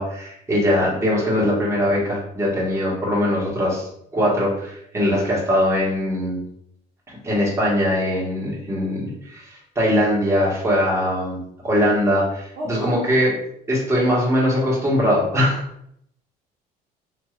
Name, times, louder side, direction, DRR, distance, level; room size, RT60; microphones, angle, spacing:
voice 1, 0.0-6.4 7.1-13.3 13.7-15.6, equal, 15° right, -5 dB, 1.3 m, -21 dB
voice 2, 12.6-13.0 13.9-14.1, right 1 dB, 60° right, -4 dB, 0.9 m, -32 dB
3.2 x 2.8 x 2.4 m, 0.72 s
cardioid pair, 110°, 17 cm